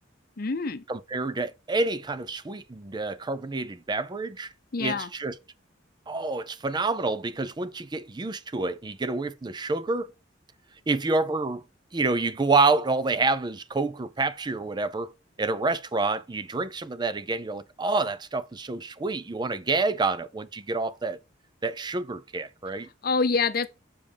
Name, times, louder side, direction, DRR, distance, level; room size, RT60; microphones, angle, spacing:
voice 1, 0.4-0.8 4.7-5.1 23.0-23.7, left 4 dB, 50° left, 0.7 m, -26 dB
voice 2, 0.9-4.5 4.8-5.3 6.1-10.1 10.9-11.6 11.9-15.1 15.4-21.2 21.6-22.9, right 3 dB, 25° right, 0.5 m, -28 dB
7.3 x 5.0 x 3.4 m
head